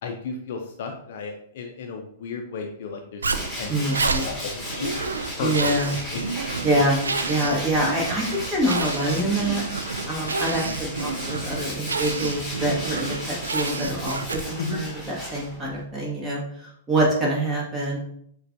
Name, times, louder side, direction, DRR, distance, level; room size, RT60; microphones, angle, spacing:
voice 1, 0.0-5.0 5.4-6.2 14.6-14.8, left 4 dB, 55° left, 3 dB, 0.5 m, -34 dB
Zipper (clothing), 3.2-14.7, right 4 dB, 80° right, 0.3 m, -30 dB
Tools, 3.3-15.8, equal, 5° left, 1.6 m, -35 dB
voice 2, 3.7-4.3 5.4-5.9 6.6-7.0 7.3-8.2 8.5-9.6 10.1-14.9 15.3-18.0, right 1 dB, 20° right, -3 dB, 1.4 m, -25 dB
6.4 x 2.4 x 2.6 m, 0.67 s
figure-of-eight pair, 105°, 0 cm